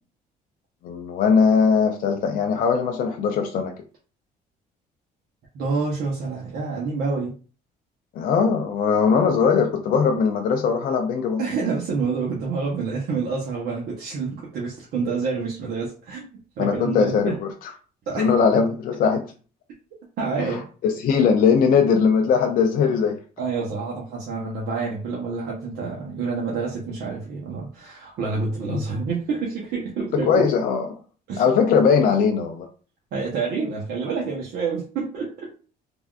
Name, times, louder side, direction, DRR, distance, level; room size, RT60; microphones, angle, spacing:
voice 1, 0.8-3.7 8.2-11.4 16.6-17.7 18.2-19.3 20.4-23.2 28.7-28.8 30.2-31.0 31.4-32.7, left 6 dB, 55° left, 4 dB, 0.4 m, -20 dB
voice 2, 5.5-7.3 11.4-17.4 18.1-18.3 20.2-20.6 23.4-30.4 31.3-31.5 33.1-35.5, right 4 dB, 70° right, -4 dB, 0.8 m, -28 dB
3.4 x 2.3 x 2.4 m, 0.39 s
cardioid pair, 110°, 17 cm